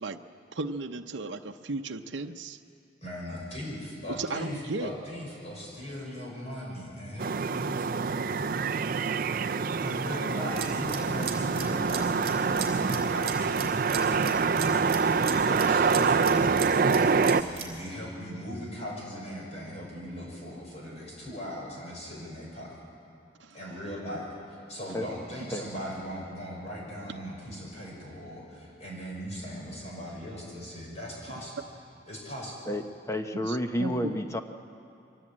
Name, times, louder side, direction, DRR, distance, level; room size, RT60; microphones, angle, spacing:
voice 1, 0.5-2.6 4.1-4.9 23.4-23.6 33.4-34.2, right 3 dB, 75° right, 6 dB, 0.7 m, -35 dB
voice 2, 3.0-8.6 9.8-14.9 15.3-22.7 23.5-24.3 24.7-31.6 32.1-32.6, equal, 35° left, -3 dB, 6.2 m, -39 dB
sound 1, 7.2-17.4, right 5 dB, 45° right, 0.4 m, -26 dB
sound 2, 10.5-17.8, right 7 dB, 30° right, 3.9 m, -38 dB
voice 3, 32.7-34.4, equal, 15° left, 7 dB, 0.8 m, -30 dB
23.5 x 17.0 x 8.7 m, 2.6 s
head